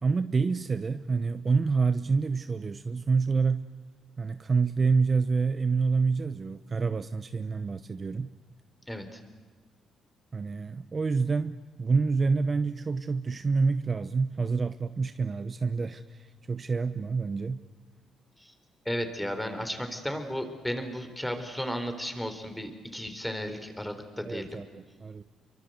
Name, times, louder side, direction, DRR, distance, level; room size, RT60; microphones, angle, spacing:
voice 1, 0.0-3.7 4.2-8.3 10.3-17.6 24.2-25.2, right 4 dB, 35° right, 11 dB, 0.9 m, -27 dB
voice 2, 8.9-9.2 18.4-18.5 18.8-24.6, equal, 5° left, 8 dB, 4.2 m, -34 dB
28.0 x 24.0 x 8.1 m, 1.5 s
cardioid pair, 100°, 0 cm